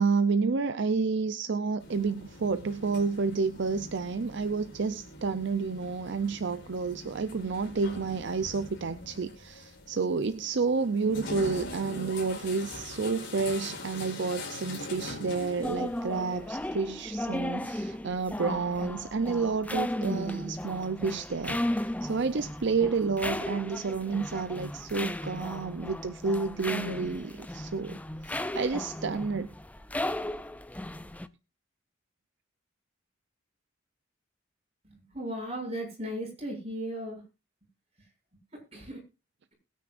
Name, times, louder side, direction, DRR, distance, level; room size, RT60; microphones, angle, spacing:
voice 1, 0.0-29.5, right 4 dB, 65° right, 12 dB, 0.6 m, -30 dB
sound 1, 1.8-16.7, left 2 dB, 65° left, 4.6 m, -43 dB
sound 2, 15.6-31.3, left 1 dB, 10° left, 0.5 m, -35 dB
voice 2, 34.9-37.2 38.7-39.0, equal, 35° right, -1 dB, 7.1 m, -36 dB
21.0 x 9.5 x 2.5 m, 0.28 s
head